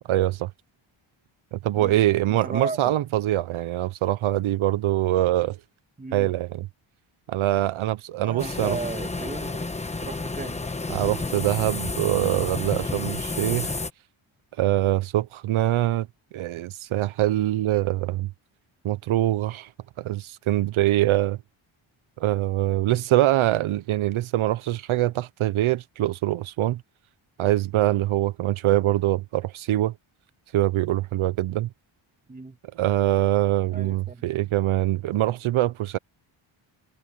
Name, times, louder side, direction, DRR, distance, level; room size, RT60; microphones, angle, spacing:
voice 1, 0.1-0.5 1.5-5.6 6.1-6.7 7.3-8.8 10.9-13.7 14.6-16.1 16.3-18.3 18.8-19.7 20.0-21.4 22.2-26.8 27.4-29.9 30.5-31.7 32.8-36.0, right 14 dB, 75° right, 0.8 m, -24 dB
voice 2, 1.8-2.9 6.0-6.3 8.2-9.7 10.0-10.6 32.3-32.6 33.7-34.4, right 3 dB, 15° right, 2.2 m, -35 dB
sound 1, 8.4-13.9, left 3 dB, 15° left, 1.1 m, -31 dB
wide cardioid pair, 155°, 48 cm